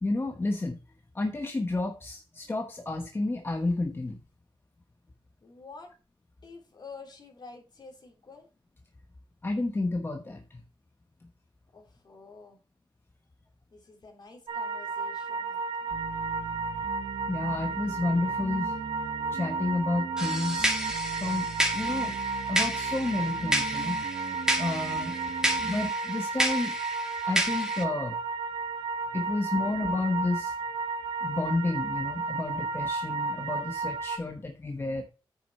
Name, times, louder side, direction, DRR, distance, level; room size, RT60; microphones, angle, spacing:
voice 1, 0.0-0.8 1.1-4.2 9.4-10.6 16.8-16.9 17.3-18.8 19.3-20.7 21.2-21.5 21.7-22.2 22.5-24.0 24.6-25.2 25.6-26.8 27.3-28.2 29.1-30.5 31.2-35.0, left 2 dB, 25° left, 4 dB, 1.1 m, -30 dB
voice 2, 5.4-5.9 6.4-8.5 11.7-12.6 13.7-16.0, left 4 dB, 50° left, 1 dB, 3.5 m, -49 dB
sound 1, 14.5-34.2, right 4 dB, 65° right, 2.0 m, -33 dB
sound 2, 15.9-25.9, right 5 dB, 50° right, 0.6 m, -41 dB
sound 3, 20.2-27.8, right 1 dB, 5° right, 1.9 m, -31 dB
9.7 x 6.4 x 4.6 m, 0.33 s
wide cardioid pair, 105°, 9 cm